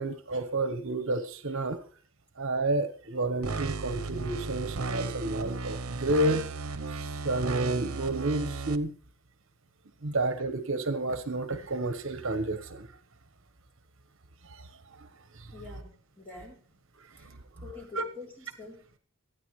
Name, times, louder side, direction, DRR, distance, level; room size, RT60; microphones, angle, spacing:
voice 1, 0.0-1.8 2.4-6.5 6.9-8.9 10.0-12.9 14.4-15.5 17.2-17.4 17.9-18.0, right 2 dB, 60° right, 9 dB, 1.1 m, -31 dB
sound 1, 3.4-8.8, right 3 dB, 80° right, 0.9 m, -35 dB
voice 2, 15.5-16.7 17.1-19.0, left 3 dB, 10° left, -2 dB, 3.6 m, -47 dB
25.0 x 9.5 x 3.2 m, 0.43 s
head